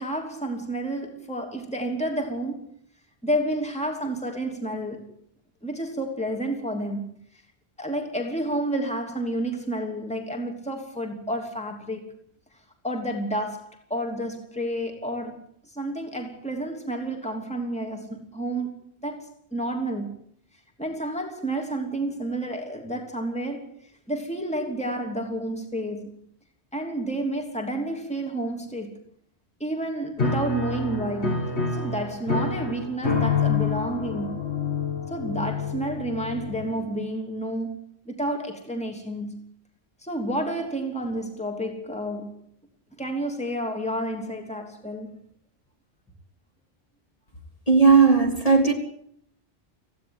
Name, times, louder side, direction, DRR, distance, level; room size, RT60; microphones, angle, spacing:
voice 1, 0.0-2.7 3.2-5.1 5.6-7.1 7.8-12.2 12.8-15.4 15.7-18.7 19.0-20.2 20.8-26.2 26.7-29.0 29.6-34.4 35.1-37.8 38.0-39.5 40.0-42.4 43.0-45.1, right 1 dB, 5° left, 3.1 m, -30 dB
Piano, 30.2-37.0, left 4 dB, 85° left, 2.0 m, -27 dB
voice 2, 47.7-48.7, right 5 dB, 35° left, 3.4 m, -16 dB
18.0 x 15.5 x 9.6 m
omnidirectional pair, 1.1 m